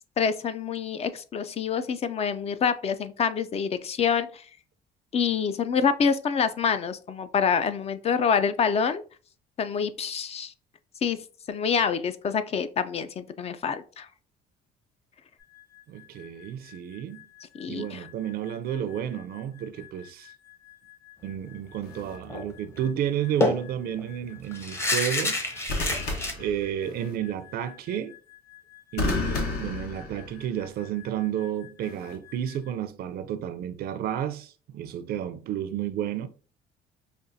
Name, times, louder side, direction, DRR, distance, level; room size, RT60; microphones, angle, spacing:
voice 1, 0.2-4.4 5.1-9.0 9.6-10.5 11.0-11.2 11.5-14.1 17.5-18.0, left 6 dB, 40° left, 0.4 m, -26 dB
sound 1, 15.4-32.7, left 15 dB, 90° left, 1.7 m, -53 dB
voice 2, 15.9-17.3 17.7-20.3 21.2-25.4 25.7-26.1 26.4-28.2 28.9-36.3, right 10 dB, 65° right, 0.5 m, -31 dB
sound 2, 21.8-22.2 25.7-27.2 29.0-30.6 31.8-32.2, left 3 dB, 70° left, 1.1 m, -32 dB
sound 3, 22.3-22.5 22.8-22.9 23.4-26.3, left 2 dB, 15° left, 0.7 m, -28 dB
5.1 x 2.4 x 2.6 m
cardioid pair, 110°, 17 cm